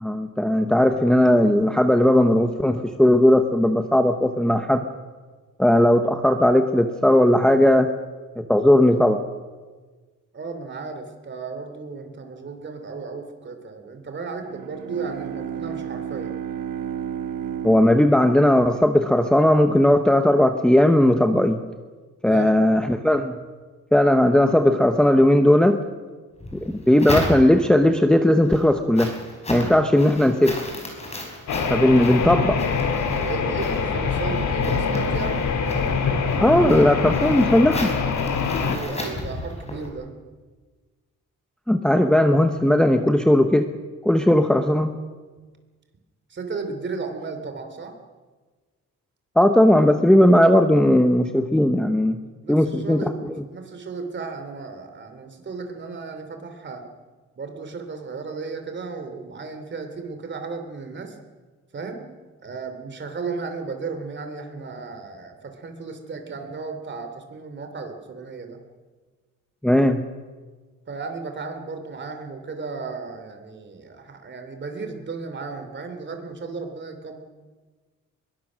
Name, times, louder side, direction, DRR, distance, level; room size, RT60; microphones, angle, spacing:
voice 1, 0.0-4.8 5.6-7.9 8.4-9.2 17.6-21.6 22.2-23.4 23.9-25.8 26.7-29.1 29.5-30.6 31.7-32.6 36.4-37.9 41.7-43.7 44.0-44.9 49.4-52.2 52.5-53.4 69.6-70.0, left 1 dB, 5° left, 6 dB, 0.9 m, -17 dB
voice 2, 10.3-16.3 22.2-22.5 33.1-35.5 38.7-40.1 46.3-47.9 52.4-56.8 57.4-61.2 61.7-62.1 62.4-68.6 70.9-77.2, right 4 dB, 35° right, 6 dB, 3.0 m, -34 dB
Bowed string instrument, 14.4-19.2, right 9 dB, 85° right, 1.0 m, -33 dB
sound 1, 26.4-27.8 28.3-39.9, left 1 dB, 20° left, 5.1 m, -34 dB
sound 2, 31.5-38.8, left 5 dB, 60° left, 2.4 m, -24 dB
24.0 x 22.0 x 6.3 m, 1.4 s
wide cardioid pair, 160°, 32 cm